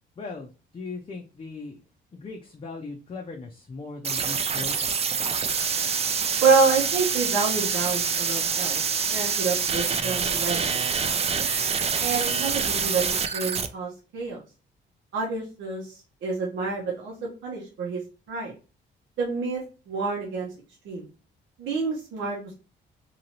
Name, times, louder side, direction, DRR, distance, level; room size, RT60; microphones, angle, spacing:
voice 1, 0.2-1.8 2.1-4.9, left 3 dB, 30° left, 0 dB, 0.5 m, -38 dB
sound 1, 4.0-13.7, right 6 dB, 30° right, 0.4 m, -26 dB
voice 2, 6.4-8.8 9.1-10.6 11.0-11.5 12.0-13.0 13.3-14.4 15.1-17.1 17.4-18.0 18.3-18.5 19.2-19.6 19.9-20.5 20.8-21.0 21.6-22.5, right 4 dB, 75° right, -3 dB, 1.0 m, -27 dB
2.9 x 2.7 x 2.9 m, 0.34 s
cardioid pair, 90°, 20 cm